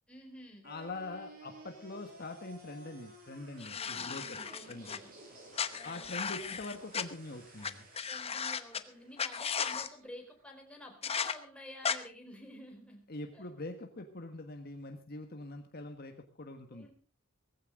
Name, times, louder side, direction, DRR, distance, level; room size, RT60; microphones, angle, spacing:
voice 1, 0.1-0.7 3.9-5.1 5.7-6.6 8.1-13.0 13.3-13.5 16.7-16.9, left 1 dB, 5° left, 1 dB, 4.2 m, -51 dB
voice 2, 0.6-4.4 4.7-5.0 5.8-7.9 13.1-16.9, left 2 dB, 50° left, 5 dB, 1.5 m, -43 dB
sound 1, 0.6-10.7, right 1 dB, 45° right, 6.8 m, -55 dB
sound 2, 3.6-5.0 5.5-7.0 7.6-7.7 7.9-8.8 9.2-9.9 11.0-11.3 11.8-12.0, left 6 dB, 30° left, 1.0 m, -35 dB
18.5 x 15.0 x 3.9 m, 0.37 s
head